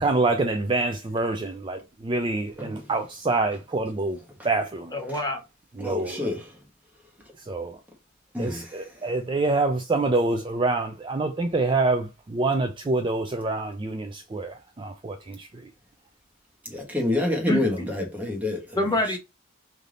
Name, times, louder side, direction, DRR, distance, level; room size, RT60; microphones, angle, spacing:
voice 1, 0.0-4.2 4.4-4.9 5.8-6.3 7.5-7.8 8.4-15.7, right 3 dB, 25° right, 0.4 m, -26 dB
voice 2, 4.9-5.4 17.5-17.9 18.8-19.2, left 1 dB, 20° left, 1.0 m, -26 dB
voice 3, 5.8-6.5 8.3-8.7 16.6-18.8, left 2 dB, 10° right, 1.1 m, -27 dB
3.3 x 2.7 x 3.7 m
head